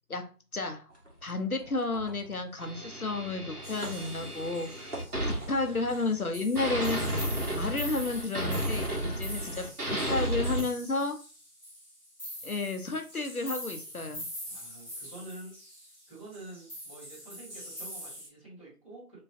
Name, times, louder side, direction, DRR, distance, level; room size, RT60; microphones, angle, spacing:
voice 1, 0.1-0.9 1.2-4.9 5.2-7.0 7.5-11.2 12.4-14.3, left 3 dB, 65° left, 6 dB, 0.7 m, -32 dB
sound 1, 0.9-8.2, right 1 dB, 50° right, 1.6 m, -48 dB
sound 2, 2.6-6.2 6.6-10.6, right 1 dB, 70° right, 1.4 m, -33 dB
sound 3, 3.6-18.3, equal, 15° left, 2.2 m, -44 dB
voice 2, 14.5-15.5 16.1-19.2, right 2 dB, 20° right, -8 dB, 2.0 m, -47 dB
4.6 x 3.1 x 2.6 m, 0.36 s
figure-of-eight pair, 175°, 47 cm